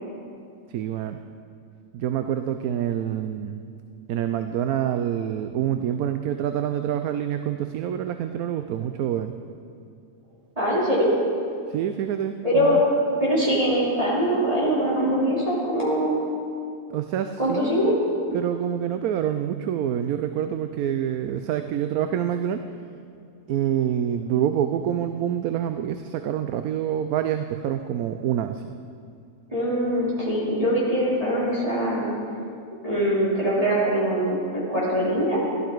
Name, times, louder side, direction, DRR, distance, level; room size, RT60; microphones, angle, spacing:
voice 1, 0.7-1.2 1.9-3.6 4.1-9.3 11.7-12.8 16.9-22.6 23.5-28.6, right 10 dB, 85° right, 8 dB, 1.1 m, -27 dB
voice 2, 10.6-11.1 12.4-12.8 13.2-16.2 17.4-17.9 29.5-32.1 32.8-35.4, equal, 25° right, -9 dB, 3.4 m, -23 dB
16.5 x 12.0 x 4.6 m, 2.4 s
omnidirectional pair, 1.5 m